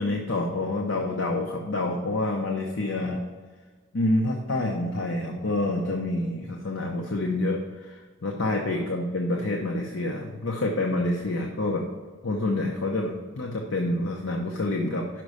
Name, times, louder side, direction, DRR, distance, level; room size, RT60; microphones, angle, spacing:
voice 1, 0.0-3.2 3.9-11.8 12.2-15.2, left 2 dB, 80° left, 1 dB, 0.8 m, -27 dB
6.1 x 5.1 x 6.4 m, 1.4 s
head